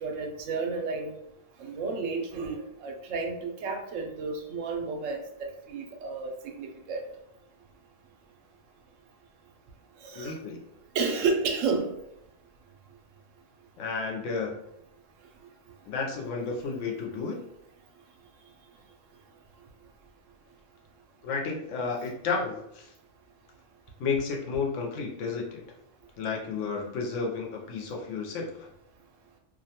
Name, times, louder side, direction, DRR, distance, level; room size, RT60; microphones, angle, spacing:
voice 1, 0.0-1.1 1.6-7.0 10.0-10.3 10.9-11.9, right 4 dB, 85° right, 3 dB, 0.9 m, -31 dB
voice 2, 10.1-10.6 13.8-14.6 15.9-17.4 21.2-22.9 24.0-25.6 26.2-28.7, left 4 dB, 75° left, 0 dB, 0.9 m, -32 dB
2.5 x 2.2 x 2.8 m, 0.78 s
omnidirectional pair, 1.3 m